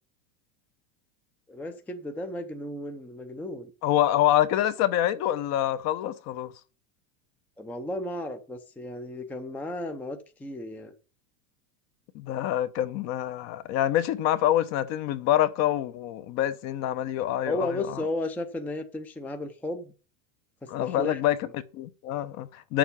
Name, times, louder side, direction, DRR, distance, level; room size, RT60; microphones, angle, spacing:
voice 1, 1.5-3.7 7.6-10.9 17.5-19.9 20.6-21.2, left 1 dB, 5° left, 0.6 m, -34 dB
voice 2, 3.8-6.5 12.1-18.0 20.7-22.8, left 12 dB, 40° left, 0.9 m, -26 dB
8.8 x 7.1 x 6.9 m
supercardioid pair, 155°, 43 cm